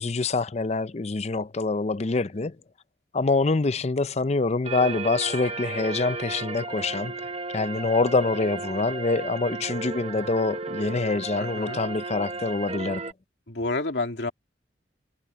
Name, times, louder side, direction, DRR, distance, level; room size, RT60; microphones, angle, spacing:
voice 1, 0.0-2.5 3.1-7.1 7.5-13.0, left 3 dB, 40° left, 0.6 m, -25 dB
sound 1, 4.6-13.1, right 3 dB, 35° right, 1.0 m, -34 dB
voice 2, 11.4-11.8 13.5-14.3, left 2 dB, 75° left, 2.4 m, -30 dB
head